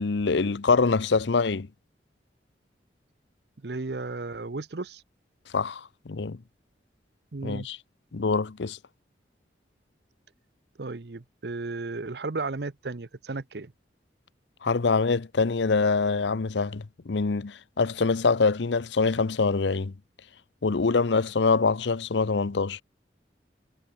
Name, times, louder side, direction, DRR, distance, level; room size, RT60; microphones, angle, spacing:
voice 1, 0.0-1.7 5.5-6.4 7.4-7.8 8.1-8.8 14.6-19.9 20.6-22.8, left 4 dB, 80° left, 0.7 m, -24 dB
voice 2, 3.6-5.0 7.3-7.7 10.8-13.7, right 3 dB, 65° right, 0.8 m, -34 dB
head